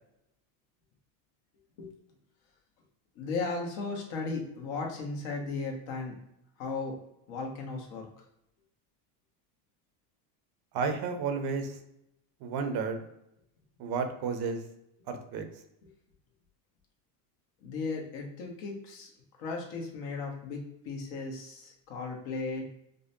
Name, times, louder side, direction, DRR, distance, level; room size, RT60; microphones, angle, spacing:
voice 1, 3.2-6.1 6.6-7.0 7.3-8.2 17.6-19.1 19.4-22.6, left 3 dB, 65° left, 1 dB, 1.2 m, -36 dB
voice 2, 10.7-11.8 12.4-13.0 13.8-14.6 15.1-15.4, right 5 dB, 50° right, 7 dB, 0.7 m, -32 dB
5.1 x 2.2 x 2.7 m, 0.81 s
supercardioid pair, 105°, 50 cm